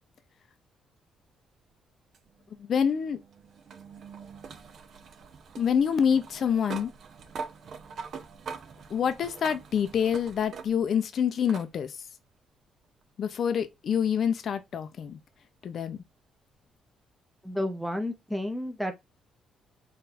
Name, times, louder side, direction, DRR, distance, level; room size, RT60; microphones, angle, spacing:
sound 1, 2.1-11.0 11.5-11.7 13.0-13.1 16.0-16.1, right 5 dB, 60° right, 0.9 m, -44 dB
voice 1, 2.7-3.2 5.6-6.9 8.9-11.9 13.2-15.2 15.6-16.0, left 7 dB, 60° left, 0.7 m, -26 dB
voice 2, 17.4-18.9, left 1 dB, ahead, 0.8 m, -31 dB
4.2 x 2.7 x 4.1 m
cardioid pair, 90°, 0 cm